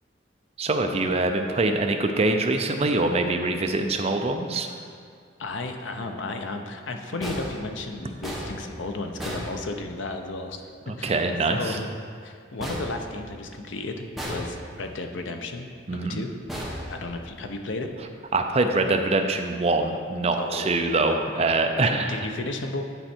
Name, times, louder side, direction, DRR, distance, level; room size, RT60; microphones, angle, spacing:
voice 1, 0.6-4.7 10.9-11.8 15.9-16.2 18.3-22.3, right 2 dB, 30° right, 5 dB, 0.4 m, -24 dB
voice 2, 5.4-10.7 11.0-11.2 11.5-11.9 12.2-16.3 16.9-17.9 20.3-20.9 21.3-22.8, left 2 dB, 80° left, 5 dB, 0.7 m, -34 dB
sound 1, 7.2-10.3 12.6-13.7 14.2-15.0 16.5-17.6, equal, ahead, 0.9 m, -36 dB
10.0 x 4.4 x 4.4 m, 2.2 s
head